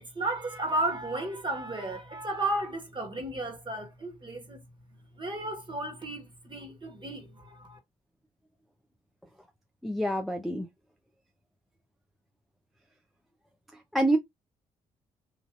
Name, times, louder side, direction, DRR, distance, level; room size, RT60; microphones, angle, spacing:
voice 1, 0.0-4.6 5.2-7.8, right 2 dB, 25° right, 1.4 m, -33 dB
voice 2, 9.8-10.7 13.9-14.2, right 1 dB, ahead, 0.5 m, -26 dB
3.2 x 2.5 x 2.5 m
hypercardioid pair, 40°, 17 cm